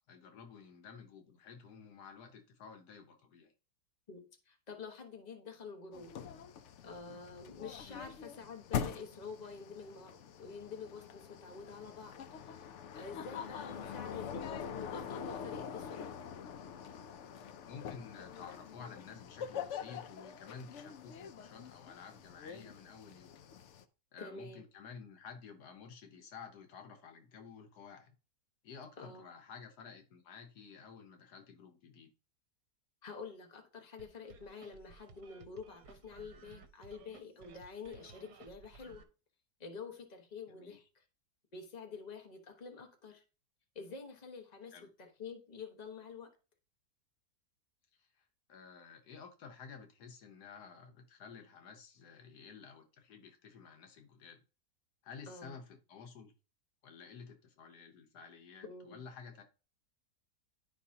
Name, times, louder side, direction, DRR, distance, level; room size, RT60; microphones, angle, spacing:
voice 1, 0.1-3.5 7.8-8.1 13.6-14.0 17.0-17.3 17.7-23.4 24.1-28.1 28.6-32.1 40.5-40.8 44.7-44.9 48.0-54.4 55.0-56.3 56.8-59.4, left 6 dB, 85° left, 1.5 m, -52 dB
voice 2, 4.1-6.1 6.8-16.2 24.2-24.6 29.0-29.3 33.0-39.0 39.6-40.8 41.5-43.2 43.7-46.3 55.3-55.5 58.6-59.0, left 5 dB, 30° left, 1.2 m, -48 dB
sound 1, 5.9-23.8, left 7 dB, 65° left, 0.7 m, -44 dB
sound 2, 34.0-39.0, right 5 dB, 70° right, 1.3 m, -57 dB
11.0 x 4.9 x 2.8 m
omnidirectional pair, 1.7 m